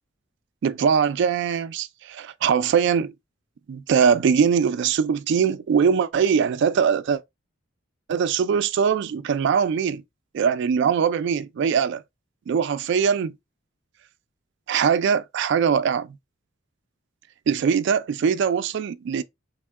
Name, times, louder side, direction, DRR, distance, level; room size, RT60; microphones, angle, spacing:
voice 1, 0.6-3.1 3.7-7.2 8.1-10.0 10.3-12.0 12.5-13.3 14.7-16.2 17.5-19.2, right 7 dB, 65° right, 0.3 m, -21 dB
3.5 x 2.2 x 3.4 m
head